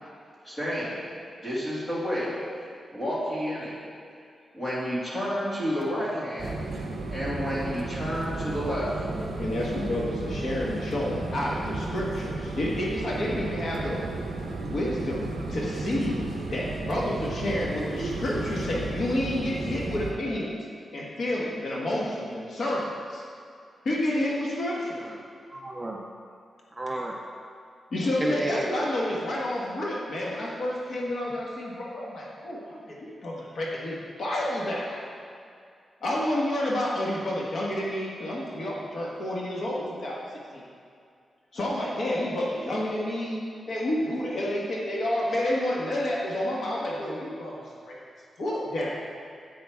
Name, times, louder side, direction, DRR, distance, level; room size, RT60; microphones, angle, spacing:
voice 1, 0.4-1.0 1.4-2.3 2.9-3.7 4.5-6.6 7.1-9.0, equal, 20° left, -8 dB, 2.6 m, -30 dB
sound 1, 6.4-20.1, right 2 dB, 45° right, 0.9 m, -33 dB
voice 2, 9.4-14.1 14.6-20.6 20.9-23.2 23.8-25.1 27.9-35.1 36.0-40.2 40.5-40.6 41.5-43.4 43.7-48.0 48.4-49.0, left 1 dB, 60° left, -4 dB, 1.5 m, -29 dB
voice 3, 25.5-26.0 26.7-27.2 28.2-28.8, right 1 dB, 10° right, -1 dB, 0.5 m, -31 dB
10.0 x 8.5 x 3.6 m, 2.3 s
wide cardioid pair, 170°, 0 cm